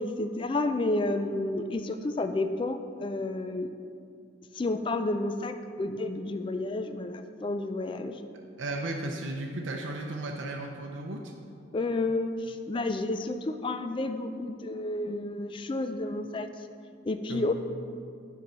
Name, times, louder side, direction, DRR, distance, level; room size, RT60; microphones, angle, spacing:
voice 1, 0.0-3.7 4.5-8.2 11.7-16.5 17.0-17.5, left 2 dB, 25° left, 8 dB, 0.3 m, -31 dB
voice 2, 8.6-11.3 17.3-17.5, right 2 dB, 75° right, 1 dB, 0.6 m, -35 dB
6.6 x 4.6 x 6.1 m, 2.4 s
head